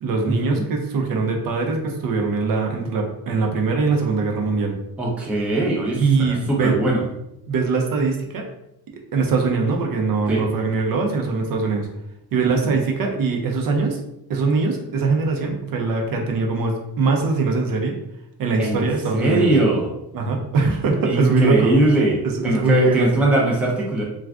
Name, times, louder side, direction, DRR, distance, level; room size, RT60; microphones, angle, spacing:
voice 1, 0.0-4.7 5.9-7.0 7.5-8.4 9.1-11.9 12.3-14.0 14.3-18.0 18.4-19.5 20.1-21.7 22.2-23.3, right 4 dB, 50° right, 2 dB, 0.5 m, -22 dB
voice 2, 5.0-7.0 10.3-10.5 18.6-18.9 19.1-19.9 21.1-22.2 22.4-24.0, right 1 dB, 5° right, -3 dB, 0.4 m, -20 dB
2.4 x 2.3 x 3.4 m, 0.84 s
cardioid pair, 125°, 44 cm